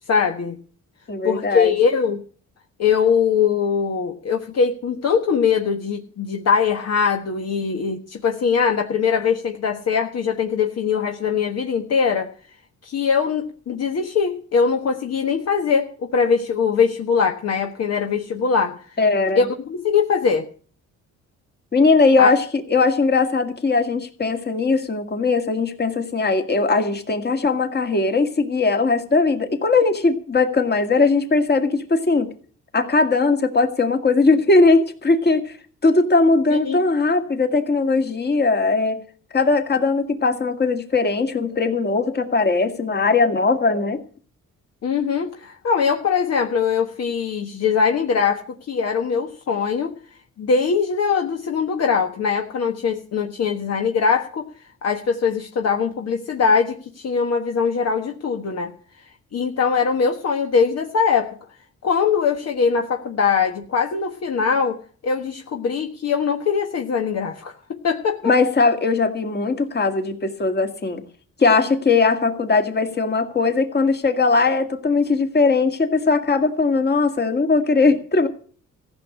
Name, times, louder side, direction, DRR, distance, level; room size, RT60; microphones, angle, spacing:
voice 1, 0.1-0.6 1.2-2.2 2.8-12.3 12.8-18.8 19.3-20.5 22.2-22.3 36.5-36.8 44.8-49.9 50.4-54.5 54.8-58.7 59.3-61.4 61.8-67.5 67.8-68.3, left 6 dB, 55° left, 4 dB, 1.4 m, -21 dB
voice 2, 1.1-1.7 19.0-19.5 21.7-32.3 32.7-35.6 35.8-39.0 39.3-44.0 68.2-71.0 71.4-78.3, left 3 dB, 35° left, 7 dB, 2.1 m, -19 dB
15.0 x 6.5 x 9.7 m, 0.44 s
cardioid pair, 90°, 30 cm